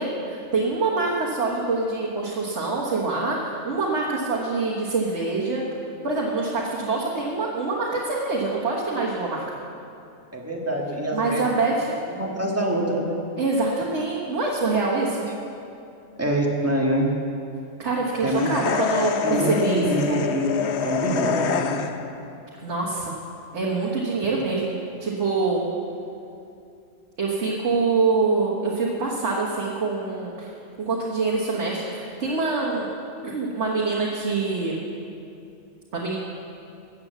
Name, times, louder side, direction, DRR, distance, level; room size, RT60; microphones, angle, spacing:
voice 1, 0.0-5.6 6.0-9.4 11.1-12.0 13.4-15.2 17.8-19.8 22.6-23.1 23.5-24.7 25.0-25.6 27.2-30.5 30.8-32.9 33.2-34.8 35.9-36.2, right 3 dB, 75° right, -4 dB, 1.7 m, -25 dB
voice 2, 10.3-11.4 12.1-13.2 16.2-17.1 18.2-18.5 19.2-21.8, right 1 dB, 10° right, -2 dB, 1.7 m, -25 dB
sound 1, 18.3-22.2, left 7 dB, 70° left, 1.0 m, -26 dB
14.5 x 8.7 x 7.0 m, 2.6 s
omnidirectional pair, 1.2 m